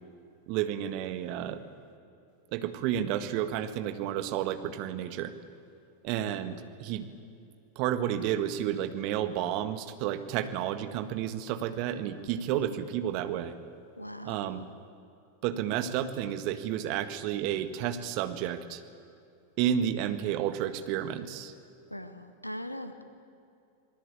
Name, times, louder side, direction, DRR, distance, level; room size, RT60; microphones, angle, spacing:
voice 1, 0.5-1.6 2.5-5.3 6.0-7.1 7.7-13.5 14.2-14.6 15.4-18.8 19.6-21.5, right 10 dB, 45° right, 10 dB, 1.7 m, -31 dB
voice 2, 14.0-14.7 21.9-23.0, equal, 90° left, 9 dB, 1.7 m, -40 dB
27.0 x 19.5 x 8.6 m, 2.6 s
figure-of-eight pair, 90°, 0 cm